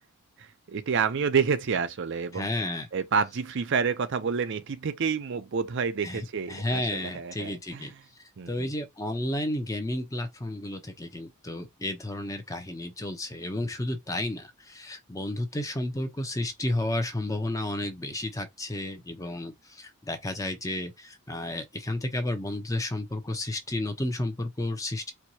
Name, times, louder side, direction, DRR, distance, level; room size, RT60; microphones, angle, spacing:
voice 1, 0.4-2.5 2.9-7.9 8.4-8.7, right 6 dB, 55° right, 0.5 m, -29 dB
voice 2, 2.3-2.9 6.0-7.9 8.5-25.1, left 1 dB, 15° left, 0.6 m, -32 dB
4.5 x 2.3 x 2.7 m
head